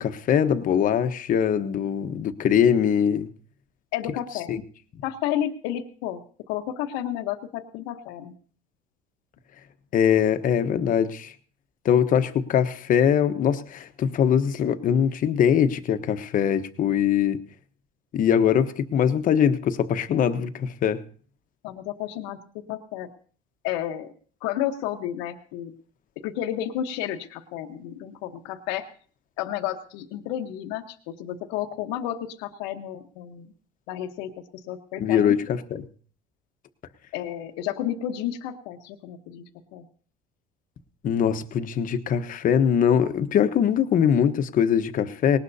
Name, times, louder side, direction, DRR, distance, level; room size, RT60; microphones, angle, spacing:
voice 1, 0.0-3.3 4.5-4.6 9.9-11.3 11.8-17.4 18.1-21.0 35.0-35.8 41.0-45.4, left 8 dB, 50° left, 10 dB, 1.1 m, -22 dB
voice 2, 3.9-4.5 5.0-6.2 6.5-8.3 21.6-23.1 23.6-24.1 24.4-25.7 26.2-28.8 29.4-33.5 33.9-35.4 37.1-39.9, left 11 dB, 85° left, 6 dB, 1.2 m, -31 dB
19.0 x 19.0 x 2.8 m, 0.43 s
supercardioid pair, 100°, 18 cm